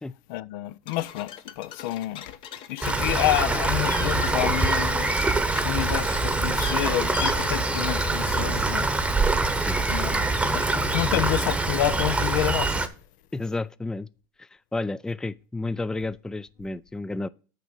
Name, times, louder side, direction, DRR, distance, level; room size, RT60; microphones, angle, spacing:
voice 1, 0.3-2.3 2.7-5.1 5.6-8.9 9.9-12.9, left 16 dB, 70° left, 0.4 m, -29 dB
sound 1, 0.9-8.6, left 9 dB, 55° left, 0.9 m, -41 dB
Rain, 2.8-12.9, right 2 dB, 10° right, 0.9 m, -24 dB
sound 2, 3.8-5.5 5.7-6.1 6.4-6.8 7.1-7.4 7.6-7.7, left 5 dB, 30° left, 1.4 m, -36 dB
voice 2, 13.3-14.1 14.4-17.3, left 2 dB, 5° left, 0.3 m, -31 dB
6.6 x 5.3 x 6.2 m
hypercardioid pair, 95°, 11 cm